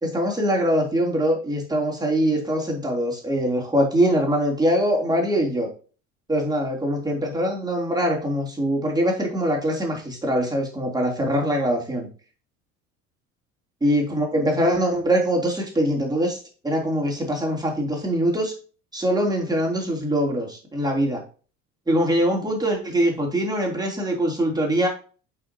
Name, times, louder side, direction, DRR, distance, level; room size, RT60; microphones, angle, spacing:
voice 1, 0.0-5.7 6.3-12.1 13.8-16.4 16.6-18.5 18.9-21.2 21.9-24.9, equal, 10° right, -1 dB, 3.3 m, -23 dB
8.6 x 5.7 x 2.9 m, 0.37 s
hypercardioid pair, 65°, 41 cm